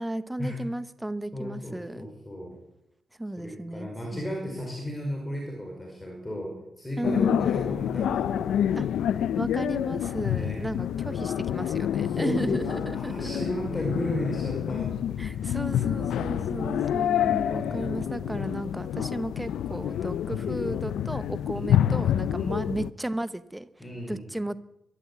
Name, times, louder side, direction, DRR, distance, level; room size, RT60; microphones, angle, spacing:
voice 1, 0.0-2.1 3.2-4.4 7.0-7.4 8.8-8.9 9.4-13.5 15.2-23.7 24.1-24.6, right 1 dB, 5° right, 14 dB, 0.8 m, -34 dB
voice 2, 1.3-2.6 3.4-9.0 10.3-10.6 12.0-15.5 16.2-16.9 17.5-18.4 20.3-20.6 21.5-21.8 22.4-22.6 23.8-24.3, equal, 10° left, 0 dB, 4.9 m, -35 dB
sound 1, 7.0-22.9, left 10 dB, 80° left, 0.7 m, -28 dB
23.0 x 13.5 x 8.6 m, 0.85 s
wide cardioid pair, 175°, 0 cm